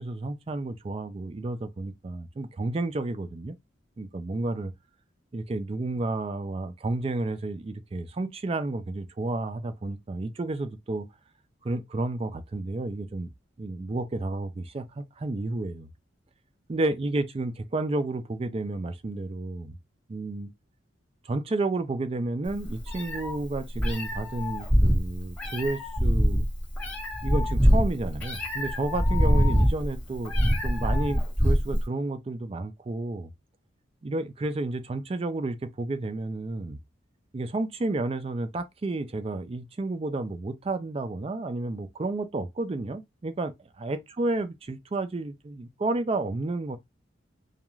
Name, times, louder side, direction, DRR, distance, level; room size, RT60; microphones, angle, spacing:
voice 1, 0.0-3.6 4.0-4.7 5.3-11.1 11.6-13.3 13.6-15.9 16.7-19.8 20.1-20.5 21.2-26.4 27.2-33.3 34.0-36.8 37.3-46.8, right 2 dB, 30° right, 0.3 m, -31 dB
Meow, 22.5-31.8, equal, 5° left, 1.2 m, -24 dB
2.5 x 2.2 x 3.0 m
head